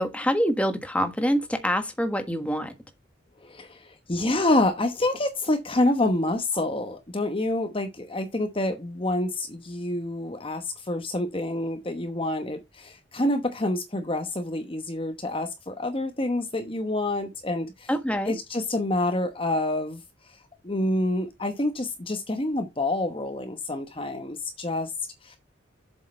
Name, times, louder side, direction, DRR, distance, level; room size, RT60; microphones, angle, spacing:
voice 1, 0.0-2.7 17.9-18.3, equal, 5° left, 1.4 m, -25 dB
voice 2, 3.4-17.9 18.3-20.0 20.6-24.9 25.2-25.4, left 1 dB, 25° left, 1.0 m, -27 dB
7.7 x 6.4 x 4.2 m
head